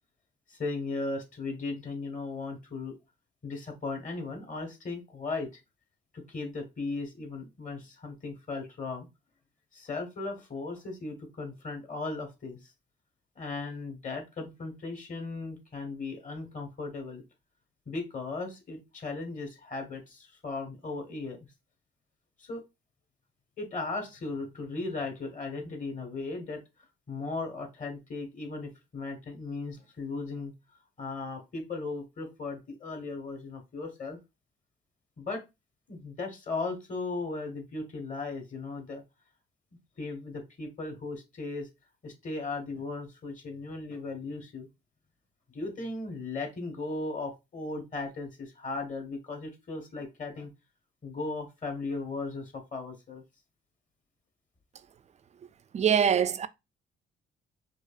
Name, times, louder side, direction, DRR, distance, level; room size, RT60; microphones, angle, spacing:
voice 1, 0.5-2.9 3.4-5.6 6.1-9.1 9.7-12.6 13.4-17.2 17.9-21.4 22.4-22.6 23.6-26.6 27.1-30.5 31.0-34.2 35.2-35.4 35.9-39.0 40.0-41.7 42.0-44.7 45.5-50.5 51.0-53.2, left 3 dB, 40° left, 1.4 m, -37 dB
voice 2, 55.7-56.5, right 8 dB, 35° right, 0.4 m, -23 dB
4.8 x 2.4 x 2.4 m
cardioid pair, 90°, 20 cm